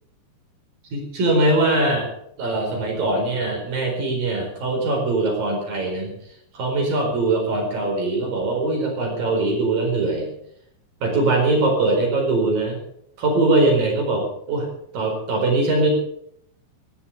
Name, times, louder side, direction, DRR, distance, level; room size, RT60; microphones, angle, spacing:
voice 1, 0.9-2.1 2.4-6.1 6.5-10.3 11.0-12.8 13.2-14.7 14.9-15.9, right 2 dB, 50° right, 1 dB, 6.1 m, -21 dB
16.5 x 11.5 x 7.0 m, 0.69 s
omnidirectional pair, 5.3 m